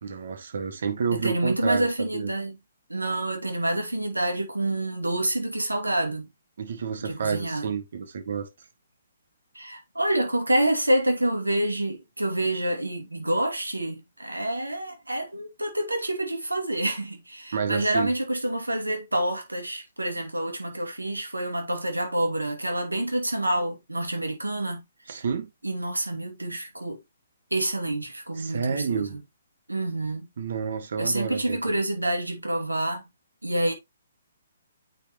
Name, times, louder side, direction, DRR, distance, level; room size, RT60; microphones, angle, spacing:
voice 1, 0.0-2.3 6.6-8.5 17.5-18.1 25.1-25.5 28.4-29.2 30.4-31.8, right 6 dB, 60° right, 1.8 m, -29 dB
voice 2, 1.1-2.6 2.9-6.3 7.0-7.7 9.5-24.8 25.6-27.0 27.5-29.2 29.7-30.3 31.0-33.0 33.4-33.7, right 1 dB, 85° right, 2.6 m, -27 dB
8.8 x 5.4 x 3.0 m
figure-of-eight pair, 130°, 0 cm